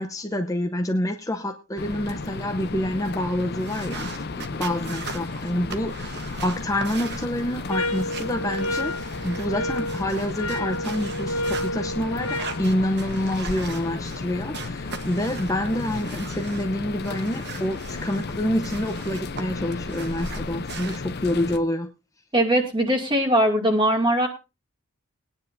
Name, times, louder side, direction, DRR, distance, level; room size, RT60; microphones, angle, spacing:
voice 1, 0.0-21.9, left 1 dB, 15° left, 5 dB, 0.8 m, -27 dB
sound 1, 1.8-21.6, left 3 dB, 50° left, 0.7 m, -34 dB
sound 2, 3.6-9.5 9.8-11.7 12.2-14.2 14.5-16.7 17.0-19.4 19.7-21.0, right 5 dB, 55° right, 1.3 m, -40 dB
sound 3, 7.7-12.6, left 1 dB, 80° left, 1.4 m, -30 dB
voice 2, 22.3-24.3, right 1 dB, 25° right, 1 dB, 2.4 m, -20 dB
20.5 x 9.9 x 2.7 m, 0.28 s
head